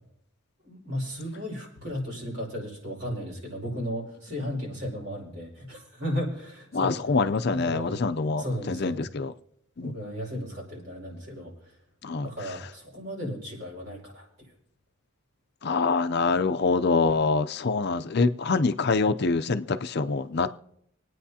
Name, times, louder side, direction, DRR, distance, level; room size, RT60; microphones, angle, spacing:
voice 1, 0.6-7.2 7.5-8.0 8.4-9.0 9.8-11.5 12.2-14.3, equal, 70° right, 5.4 m, -35 dB
voice 2, 6.7-9.3 9.8-9.9 12.0-12.3 15.6-20.6, left 4 dB, 55° left, 0.6 m, -25 dB
26.5 x 9.2 x 2.8 m
head